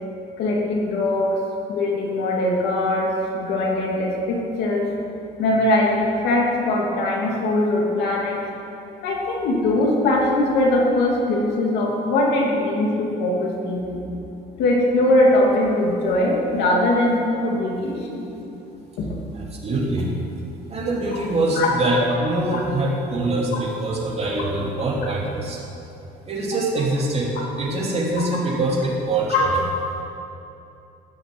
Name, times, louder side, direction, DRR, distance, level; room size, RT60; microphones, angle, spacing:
voice 1, 0.4-1.4 1.7-4.9 5.4-8.4 9.0-14.0 14.6-18.3 19.0-19.1 21.6-21.7 22.5-22.6 23.5-23.6 29.3-29.4, left 1 dB, 85° left, -2 dB, 2.8 m, -21 dB
voice 2, 19.3-20.1 20.7-25.6 26.2-27.3 27.6-29.6, right 2 dB, 40° right, -3 dB, 3.3 m, -24 dB
14.0 x 7.6 x 8.0 m, 2.8 s
cardioid pair, 110°, 17 cm